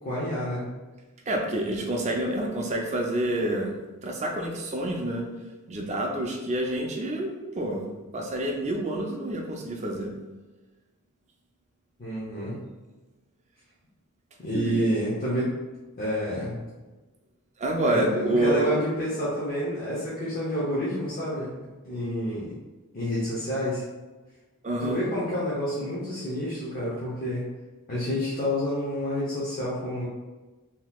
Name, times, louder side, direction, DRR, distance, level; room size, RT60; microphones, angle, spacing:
voice 1, 0.0-0.7 12.0-12.6 14.4-15.5 16.0-16.6 17.8-22.5 22.9-23.8 24.8-27.5 27.9-30.1, equal, 40° left, -8 dB, 0.7 m, -29 dB
voice 2, 1.3-3.7 4.0-5.2 5.7-10.1 14.5-14.8 17.6-18.8 24.6-25.0, right 1 dB, 30° right, 1 dB, 0.5 m, -28 dB
3.9 x 2.8 x 2.3 m, 1.2 s
head